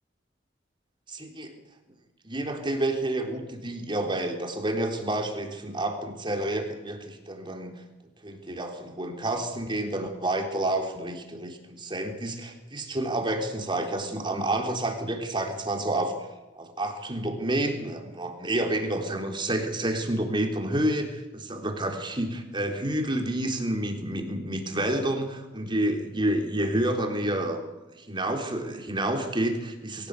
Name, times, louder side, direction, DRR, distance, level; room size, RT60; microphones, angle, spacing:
voice 1, 1.1-1.5 2.2-7.7 8.2-16.1 16.6-27.6 27.9-30.1, right 1 dB, 25° right, 3 dB, 3.8 m, -29 dB
23.0 x 17.0 x 8.4 m, 1.1 s
head